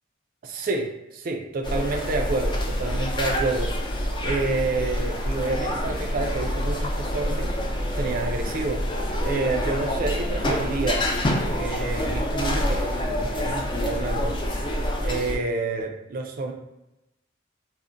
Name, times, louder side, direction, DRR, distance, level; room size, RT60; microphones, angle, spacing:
voice 1, 0.4-3.7 4.2-7.5 7.9-8.8 9.2-11.0 11.6-14.4 15.0-16.5, right 3 dB, 50° right, 3 dB, 0.4 m, -28 dB
sound 1, 1.6-15.4, equal, 25° left, 0.3 m, -27 dB
2.4 x 2.1 x 3.7 m, 0.96 s
head